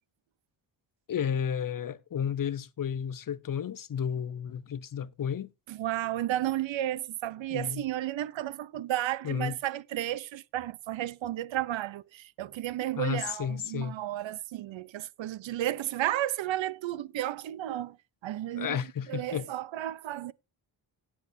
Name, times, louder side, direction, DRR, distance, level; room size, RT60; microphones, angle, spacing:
voice 1, 1.1-5.5 7.5-7.8 9.2-9.6 13.0-13.9 18.6-19.5, left 8 dB, 45° left, 0.8 m, -32 dB
voice 2, 5.7-18.0 18.2-18.8 19.1-20.3, right 13 dB, 75° right, 0.7 m, -33 dB
18.0 x 7.2 x 2.7 m
cardioid pair, 100°, 46 cm